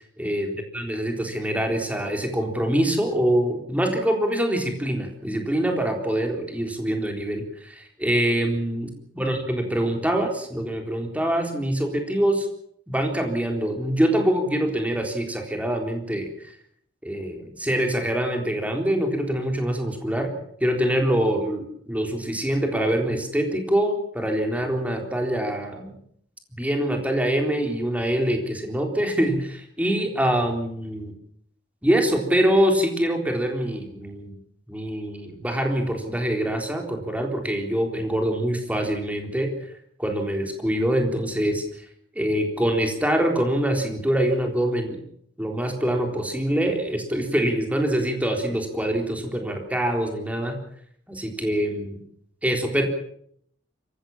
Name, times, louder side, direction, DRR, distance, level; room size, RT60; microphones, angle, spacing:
voice 1, 0.2-8.9 9.2-12.5 12.9-16.3 17.0-20.3 20.6-25.9 26.6-31.1 31.8-34.4 34.7-39.5 40.0-41.6 42.2-45.0 45.4-50.6 51.1-52.0 52.4-52.8, right 1 dB, 10° right, 3 dB, 3.8 m, -24 dB
25.5 x 15.5 x 7.3 m, 0.67 s
head